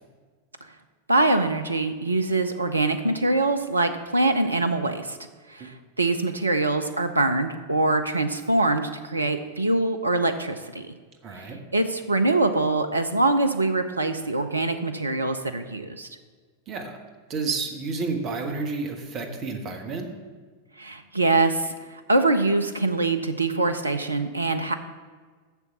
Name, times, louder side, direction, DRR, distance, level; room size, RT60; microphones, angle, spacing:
voice 1, 1.1-5.2 5.5-10.9 11.3-11.5 11.7-16.1 20.8-21.7 22.1-24.7, right 2 dB, 80° right, 9 dB, 0.5 m, -24 dB
voice 2, 11.2-11.6 16.7-17.0 17.3-20.1, right 4 dB, 35° right, 4 dB, 1.3 m, -30 dB
6.9 x 6.9 x 6.9 m, 1.5 s
figure-of-eight pair, 90°, 0 cm